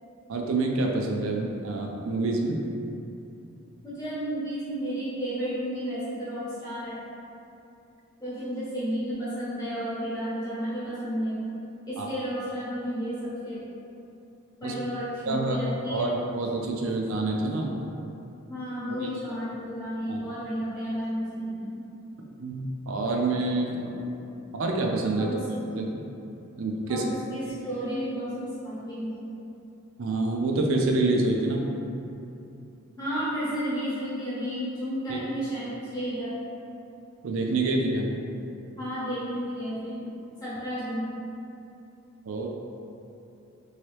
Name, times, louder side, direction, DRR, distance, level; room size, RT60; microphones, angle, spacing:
voice 1, 0.3-2.6 12.0-12.1 14.6-14.7 15.3-15.6 15.9-17.8 18.9-19.0 20.1-20.2 22.4-24.2 24.5-25.3 25.7-26.0 26.6-27.0 30.0-31.7 35.1-35.2 37.2-38.1 42.3-42.5, right 2 dB, 65° right, 0 dB, 0.4 m, -27 dB
voice 2, 3.8-7.0 8.2-11.5 11.9-13.6 14.6-16.2 18.5-21.9 25.2-25.4 26.9-29.2 33.0-36.3 38.8-40.1 40.4-41.2, equal, 15° left, -13 dB, 1.0 m, -32 dB
3.1 x 2.7 x 3.0 m, 2.8 s
head